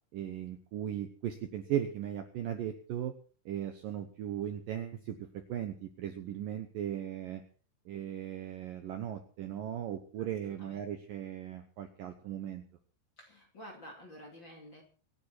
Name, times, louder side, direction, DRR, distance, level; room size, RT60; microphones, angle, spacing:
voice 1, 0.1-3.1 3.5-7.4 7.9-12.6, right 10 dB, 70° right, 7 dB, 2.2 m, -37 dB
voice 2, 10.4-10.8 13.2-14.8, equal, 35° left, 1 dB, 2.4 m, -50 dB
25.5 x 9.9 x 4.5 m, 0.39 s
omnidirectional pair, 5.3 m